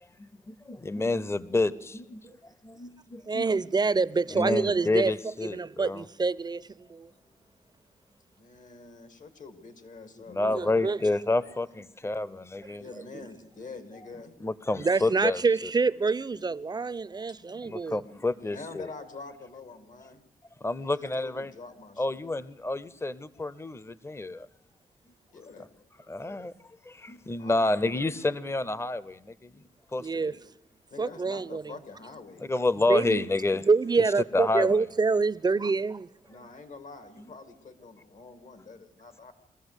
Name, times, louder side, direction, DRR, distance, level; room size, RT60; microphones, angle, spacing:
voice 1, 0.2-3.4 4.3-6.1 10.3-12.8 14.4-15.7 17.6-18.9 20.6-21.5 22.0-24.5 26.1-26.5 26.9-29.6 29.9-30.2 32.4-33.6 34.3-34.8, left 2 dB, 20° left, 0.8 m, -29 dB
voice 2, 3.3-5.1 5.5-7.1 10.4-11.0 12.7-12.8 13.1-13.3 14.7-18.0 30.0-30.3 31.0-31.8 32.9-33.2 33.7-36.1, right 4 dB, 30° right, 0.6 m, -26 dB
voice 3, 8.3-11.1 12.8-14.3 17.3-17.6 18.1-20.3 20.8-22.2 25.3-25.7 27.4-27.9 30.1-30.4 30.9-32.5 36.3-39.3, left 3 dB, 65° left, 2.2 m, -46 dB
22.5 x 14.5 x 8.1 m
cardioid pair, 80°, 14 cm